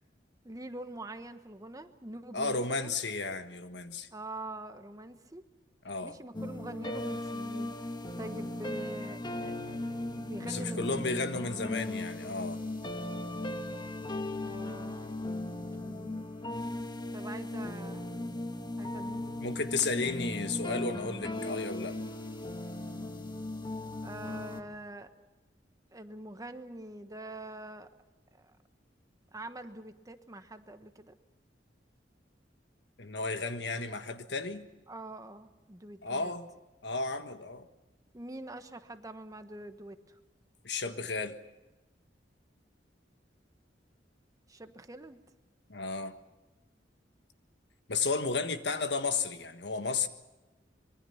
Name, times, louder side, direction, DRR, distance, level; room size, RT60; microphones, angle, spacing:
voice 1, 0.4-2.9 4.1-5.4 6.0-7.8 8.2-9.8 10.1-11.2 14.4-15.3 15.8-16.2 17.1-18.2 18.8-19.6 24.0-25.1 25.9-27.9 28.4-28.5 29.3-31.1 34.9-36.3 38.1-40.2 44.5-45.2, right 1 dB, 20° right, 1.2 m, -44 dB
voice 2, 2.3-4.1 5.8-6.2 10.4-12.6 19.4-22.0 33.0-34.6 36.0-36.5 36.8-37.7 40.6-41.4 45.7-46.2 47.9-50.1, left 4 dB, 70° left, 1.5 m, -33 dB
sound 1, 6.3-24.6, left 1 dB, 25° left, 1.4 m, -37 dB
25.5 x 22.5 x 5.8 m
head